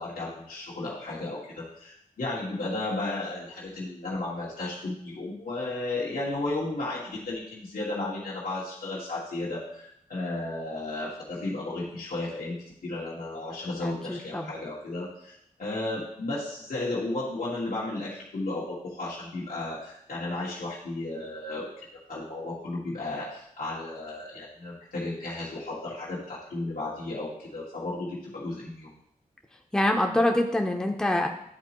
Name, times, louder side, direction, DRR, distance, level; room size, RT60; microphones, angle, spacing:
voice 1, 0.0-12.6 12.8-21.7 22.1-28.9, left 2 dB, 85° left, -8 dB, 1.6 m, -34 dB
voice 2, 13.8-14.5 29.7-31.3, left 1 dB, 5° left, 2 dB, 0.6 m, -25 dB
10.5 x 4.1 x 3.0 m, 0.72 s
wide cardioid pair, 120°, 15 cm